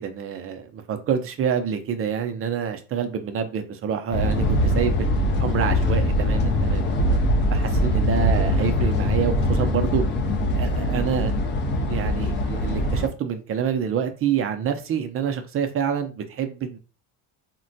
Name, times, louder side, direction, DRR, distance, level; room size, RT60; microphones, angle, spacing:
voice 1, 0.0-6.9 7.5-10.0 10.5-11.3 11.9-16.8, right 7 dB, 35° right, 0.4 m, -27 dB
sound 1, 4.1-13.1, left 1 dB, 30° left, 0.4 m, -22 dB
3.6 x 2.1 x 2.6 m
cardioid pair, 130°, 41 cm